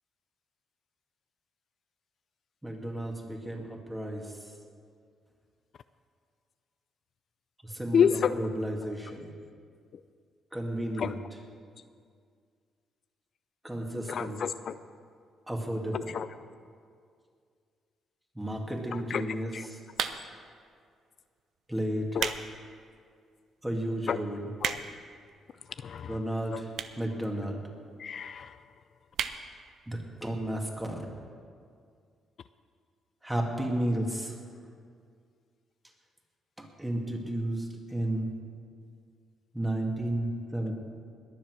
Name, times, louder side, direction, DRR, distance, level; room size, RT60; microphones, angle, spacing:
voice 1, 2.6-4.5 7.6-9.3 10.5-11.2 13.6-14.4 15.5-16.1 18.3-19.8 21.7-22.1 23.6-24.4 26.1-26.7 27.0-27.6 29.9-30.9 33.2-34.4 36.6-38.3 39.5-40.7, right 1 dB, 10° right, 1 dB, 2.4 m, -33 dB
voice 2, 7.9-8.4 11.0-11.1 14.1-14.8 15.9-16.3 19.1-19.7 22.1-22.3 24.1-24.2 24.6-24.8 25.8-26.2 26.5-26.6 28.0-28.6, left 7 dB, 55° left, 12 dB, 0.4 m, -29 dB
sound 1, 19.9-20.5 21.2-21.4 21.9-22.5 22.9-23.0 23.6-23.7 23.9-24.0 24.2-25.1 25.9-26.0 26.7-27.1 27.4-27.5 27.7-27.8 28.0-28.1 28.4-28.6 29.1-29.4 29.8-29.9 30.1-30.2, right 8 dB, 70° right, 0.7 m, -33 dB
21.0 x 7.5 x 6.4 m, 2.2 s
cardioid pair, 90°, 0 cm